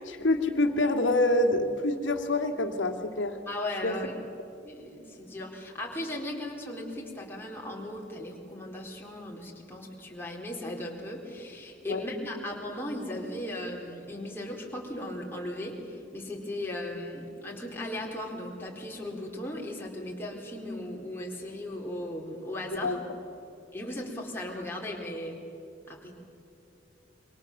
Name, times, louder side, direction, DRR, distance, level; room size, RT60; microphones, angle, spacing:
voice 1, 0.0-3.4 3.8-4.0 11.9-12.0 22.7-23.0, left 2 dB, 85° left, 5 dB, 2.3 m, -26 dB
voice 2, 3.5-4.1 4.6-23.0 23.7-25.4 25.9-26.1, left 1 dB, 10° left, -2 dB, 3.9 m, -37 dB
28.0 x 24.5 x 7.3 m, 2.8 s
head